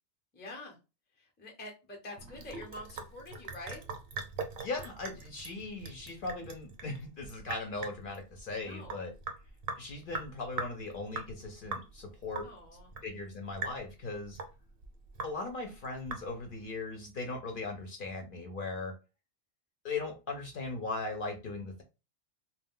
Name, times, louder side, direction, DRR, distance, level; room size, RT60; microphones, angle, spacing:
voice 1, 0.3-0.8 1.2-3.8 8.6-9.0 12.4-12.9, left 2 dB, 15° left, 1 dB, 0.5 m, -46 dB
Sink (filling or washing) / Drip, 2.2-16.6, right 4 dB, 60° right, 0.7 m, -42 dB
voice 2, 4.6-9.1 9.8-12.5 13.0-14.4 15.2-18.9 19.8-21.8, left 3 dB, 55° left, 3 dB, 0.7 m, -38 dB
2.2 x 2.2 x 3.5 m, 0.29 s
omnidirectional pair, 1.2 m